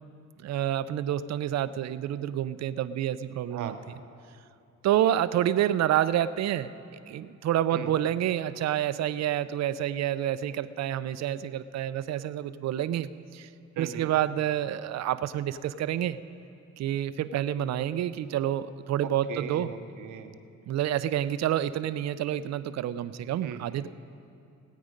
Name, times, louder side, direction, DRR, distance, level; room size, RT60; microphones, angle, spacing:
voice 1, 0.4-3.7 4.8-6.7 7.1-13.5 13.8-16.2 16.8-19.7 20.7-23.9, right 11 dB, 60° right, 14 dB, 0.5 m, -28 dB
voice 2, 3.5-3.8 7.7-7.9 13.8-14.1 19.0-20.4 23.4-23.7, right 8 dB, 80° right, 7 dB, 0.9 m, -39 dB
19.0 x 8.5 x 5.2 m, 2.5 s
cardioid pair, 90°, 30 cm